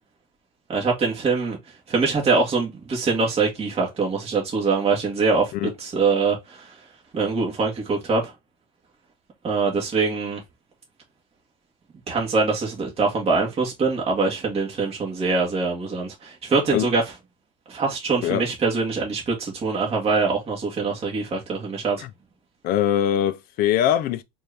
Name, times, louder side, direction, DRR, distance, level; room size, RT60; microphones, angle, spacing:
voice 1, 0.7-1.6 1.9-6.7 7.1-8.3 9.4-10.4 12.1-17.0 17.7-22.0, right 4 dB, 20° right, 1.7 m, -23 dB
voice 2, 22.6-24.2, left 11 dB, 30° left, 0.4 m, -22 dB
4.3 x 2.7 x 3.4 m
supercardioid pair, 140°, 30 cm